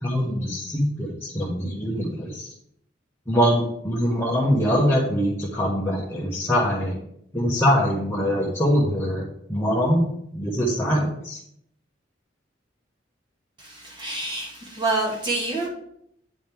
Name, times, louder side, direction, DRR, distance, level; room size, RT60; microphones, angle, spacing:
voice 1, 0.0-2.5 3.3-6.9 7.3-9.2 9.5-11.4, equal, 15° left, -6 dB, 1.2 m, -23 dB
voice 2, 13.6-15.7, right 2 dB, 25° right, -3 dB, 1.6 m, -27 dB
9.1 x 5.1 x 3.5 m, 0.73 s
head